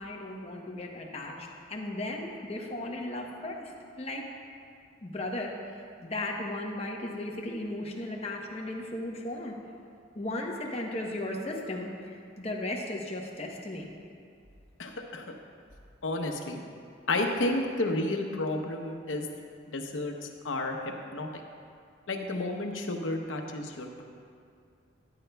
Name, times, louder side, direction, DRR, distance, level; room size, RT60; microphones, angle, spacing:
voice 1, 0.0-3.7 4.0-4.2 5.0-5.5 6.0-9.6 10.1-13.9, left 1 dB, 35° left, 0 dB, 0.9 m, -36 dB
voice 2, 14.8-15.2 16.0-16.6 17.1-19.3 19.7-20.1 20.4-20.8 21.1-21.4 22.1-24.0, left 2 dB, 85° left, 3 dB, 0.8 m, -31 dB
13.0 x 10.0 x 2.3 m, 2.3 s
head